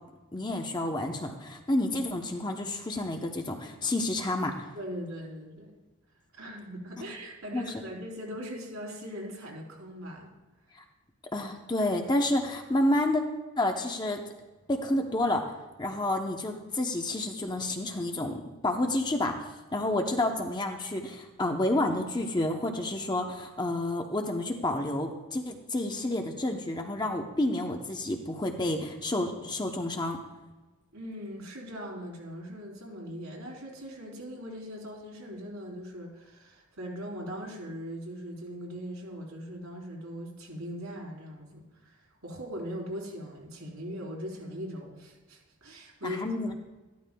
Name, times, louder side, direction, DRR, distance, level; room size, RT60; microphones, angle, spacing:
voice 1, 0.3-4.7 7.0-7.1 7.5-7.6 11.3-13.2 13.6-14.2 14.7-15.4 15.8-19.4 19.7-30.2 46.0-46.5, left 1 dB, 20° left, 3 dB, 0.7 m, -29 dB
voice 2, 4.7-5.7 6.3-10.3 30.9-46.2, equal, 75° right, -2 dB, 3.6 m, -40 dB
13.5 x 12.5 x 2.3 m, 1.2 s
head